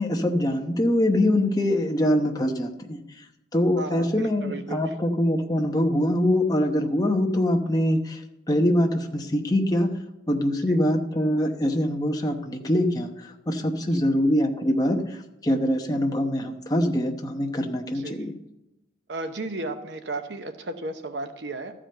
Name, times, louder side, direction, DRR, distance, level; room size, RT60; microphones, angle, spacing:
voice 1, 0.0-3.0 3.5-8.2 8.5-9.9 10.3-15.2 15.4-18.3, left 1 dB, 20° left, 3 dB, 0.9 m, -23 dB
voice 2, 3.8-4.8 10.7-10.8 17.9-18.2 19.1-21.7, right 2 dB, 75° right, 7 dB, 0.8 m, -34 dB
13.0 x 5.0 x 7.7 m, 0.90 s
head